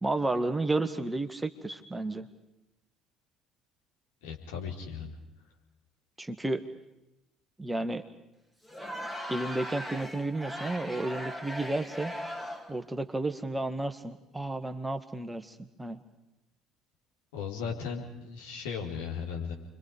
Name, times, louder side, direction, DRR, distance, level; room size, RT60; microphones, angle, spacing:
voice 1, 0.0-2.3 6.2-6.6 7.6-8.0 9.3-12.1 12.7-16.0, right 2 dB, 10° right, 9 dB, 1.6 m, -32 dB
voice 2, 4.2-5.2 17.3-19.5, left 6 dB, 70° left, -1 dB, 4.3 m, -36 dB
Crowd, 8.6-12.8, equal, 10° left, 2.8 m, -39 dB
29.0 x 23.5 x 5.1 m, 0.93 s
figure-of-eight pair, 55°, 0 cm